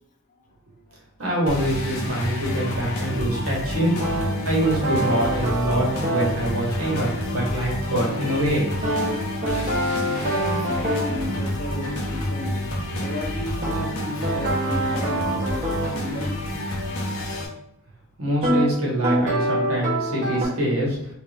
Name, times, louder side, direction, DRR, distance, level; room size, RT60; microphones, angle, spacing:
voice 1, 1.2-4.0 4.4-8.9 18.2-21.0, right 1 dB, 75° right, -3 dB, 1.3 m, -24 dB
sound 1, 1.5-17.5, left 1 dB, 85° left, 0.8 m, -29 dB
sound 2, 4.0-6.4 8.8-11.2 13.6-16.0 18.4-18.7 19.0-20.4, right 1 dB, 35° right, 0.9 m, -25 dB
voice 2, 10.2-12.7 13.0-16.4, equal, 35° left, 2 dB, 0.5 m, -35 dB
3.3 x 2.7 x 3.3 m, 0.81 s
head